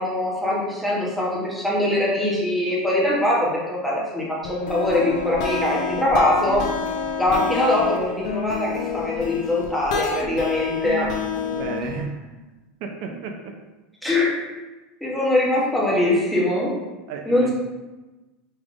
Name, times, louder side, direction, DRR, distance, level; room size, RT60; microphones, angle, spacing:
voice 1, 0.0-6.6 7.2-11.1 14.0-14.3 15.0-16.7 17.3-17.5, left 1 dB, ahead, -6 dB, 0.9 m, -22 dB
sound 1, 4.4-12.0, left 5 dB, 75° left, 0.6 m, -28 dB
voice 2, 11.5-12.3 12.8-13.5 15.3-15.6 17.1-17.5, right 5 dB, 55° right, 3 dB, 0.4 m, -33 dB
5.0 x 3.4 x 2.5 m, 1.1 s
supercardioid pair, 165°, 4 cm